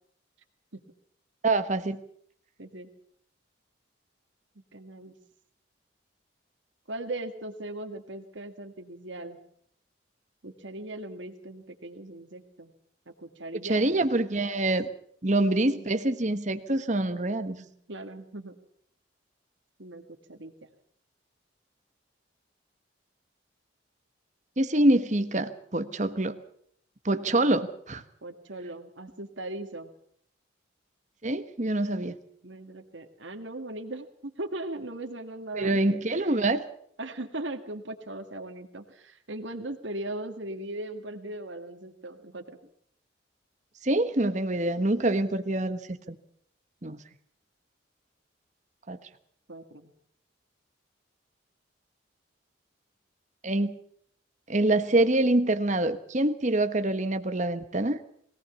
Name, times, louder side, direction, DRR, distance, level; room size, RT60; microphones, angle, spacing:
voice 1, 1.4-2.0 13.7-14.9 15.2-17.6 24.6-26.4 27.0-28.0 31.2-32.1 35.5-36.6 43.8-46.2 46.8-47.0 48.9-49.0 53.4-53.7 54.5-58.0, right 2 dB, 40° right, 10 dB, 1.3 m, -25 dB
voice 2, 2.6-2.9 4.7-5.1 6.9-9.4 10.4-12.7 13.1-13.8 15.4-15.9 17.6-18.6 19.8-20.5 28.2-29.9 32.4-36.3 37.0-42.6 49.5-49.9, right 1 dB, 75° right, 5 dB, 2.0 m, -39 dB
22.0 x 17.5 x 7.1 m, 0.66 s
head